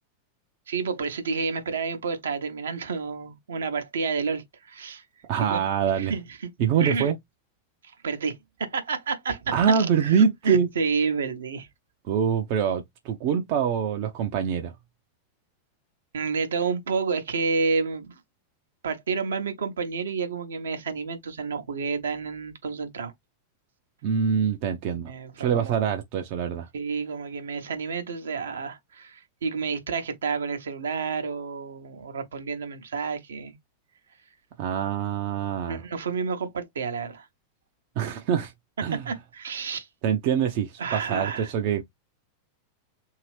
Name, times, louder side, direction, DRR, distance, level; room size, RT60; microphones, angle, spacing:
voice 1, 0.7-5.0 5.4-5.6 5.9-6.5 6.8-7.1 8.0-11.7 16.1-18.1 18.8-23.1 25.1-25.8 26.7-33.6 35.6-37.3 38.9-39.9 40.8-41.5, right 5 dB, 65° right, 0.8 m, -30 dB
voice 2, 5.3-6.1 6.6-7.1 9.5-10.7 12.1-14.7 24.0-25.1 25.4-26.7 34.6-35.8 38.0-38.5 38.8-39.1 40.0-41.8, right 7 dB, 45° right, 0.6 m, -24 dB
2.8 x 2.7 x 3.2 m
figure-of-eight pair, 90°, 0 cm